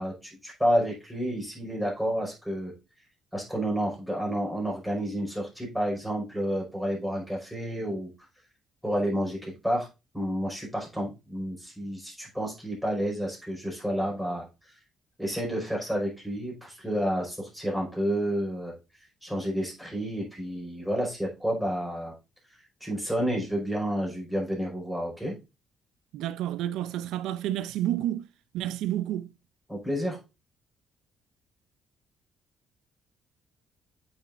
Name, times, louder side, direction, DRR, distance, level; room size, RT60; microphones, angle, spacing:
voice 1, 0.0-2.7 3.3-8.1 8.8-9.9 10.1-14.5 15.2-18.7 19.2-22.1 22.8-25.3 29.7-30.2, equal, 5° right, 4.8 m, -30 dB
voice 2, 26.1-28.3 28.5-29.3, right 12 dB, 90° right, 0.4 m, -30 dB
8.5 x 6.1 x 2.5 m
cardioid pair, 100°, 0 cm